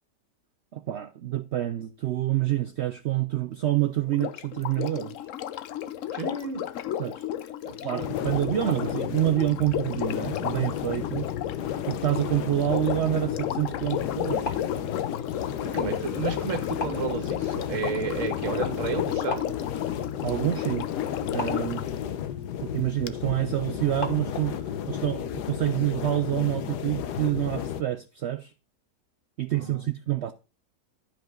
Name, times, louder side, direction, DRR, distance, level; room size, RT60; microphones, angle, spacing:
voice 1, 0.7-5.1 7.0-7.2 7.8-11.3 11.8-14.5 20.2-20.9 21.3-21.8 22.6-28.5 29.4-30.3, right 13 dB, 80° right, 0.6 m, -27 dB
Sink (filling or washing), 4.1-21.9 23.1-23.2, left 11 dB, 65° left, 0.8 m, -33 dB
voice 2, 6.1-6.6 7.7-8.1 8.7-8.9 15.7-19.5 29.5-29.9, right 4 dB, 55° right, 1.9 m, -32 dB
sound 1, 8.0-27.8, left 9 dB, 85° left, 1.4 m, -33 dB
sound 2, 14.2-24.7, left 3 dB, 35° left, 1.5 m, -42 dB
12.0 x 5.3 x 3.8 m
omnidirectional pair, 1.7 m